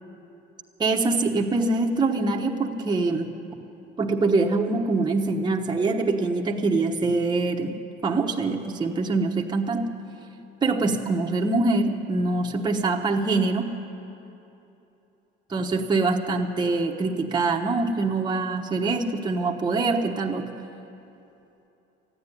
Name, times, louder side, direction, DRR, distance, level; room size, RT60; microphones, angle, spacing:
voice 1, 0.8-3.3 4.0-9.9 10.6-13.7 15.5-20.5, right 3 dB, 20° right, 0 dB, 1.0 m, -24 dB
14.5 x 9.6 x 9.8 m, 2.9 s
cardioid pair, 110°, 20 cm